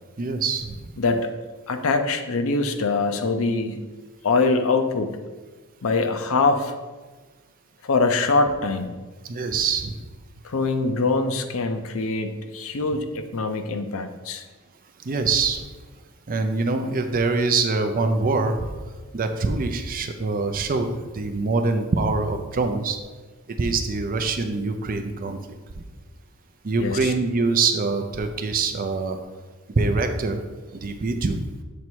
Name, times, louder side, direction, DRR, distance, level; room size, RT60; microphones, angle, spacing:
voice 1, 0.2-0.8 9.2-9.9 15.1-15.6 16.3-18.7 19.1-23.0 23.6-25.4 26.6-29.2 29.8-30.4 30.7-31.4, right 3 dB, 40° right, 6 dB, 0.5 m, -24 dB
voice 2, 1.0-1.3 1.7-3.8 4.2-5.1 5.8-6.8 7.8-8.9 10.4-14.4 26.8-27.1, left 3 dB, 65° left, 7 dB, 0.5 m, -23 dB
7.1 x 3.2 x 4.5 m, 1.3 s
head